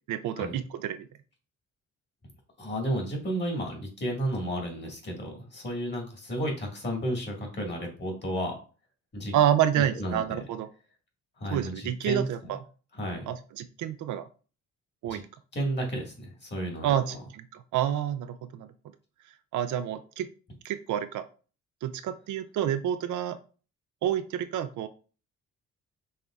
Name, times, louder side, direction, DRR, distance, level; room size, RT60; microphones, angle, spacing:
voice 1, 0.1-1.1 9.3-10.7 11.5-12.6 13.3-14.3 15.0-15.2 16.8-18.7 19.5-20.3 20.6-21.3 21.8-23.4 24.0-24.9, right 10 dB, 75° right, 10 dB, 0.5 m, -28 dB
voice 2, 2.6-8.6 9.1-9.3 9.8-10.4 11.4-12.3 12.9-13.3 15.1-15.2 15.5-17.2, right 1 dB, 35° left, 1 dB, 1.8 m, -32 dB
5.5 x 3.3 x 2.4 m, 0.37 s
cardioid pair, 90°, 30 cm